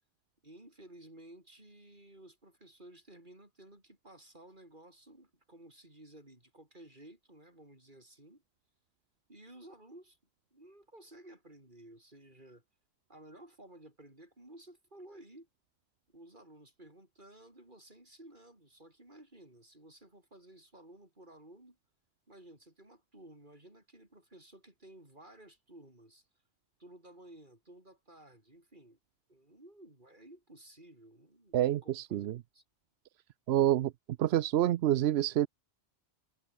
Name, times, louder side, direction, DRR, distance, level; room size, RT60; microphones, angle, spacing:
voice 1, 0.4-8.4 9.3-10.2 10.5-12.6 13.1-15.5 16.1-21.8 22.3-26.3 26.8-29.0 29.3-32.3 32.5-32.6, right 1 dB, 45° right, 6.4 m, -55 dB
voice 2, 31.5-32.4 33.5-33.9 34.2-35.5, right 12 dB, 75° right, 0.8 m, -27 dB
omnidirectional pair, 1.1 m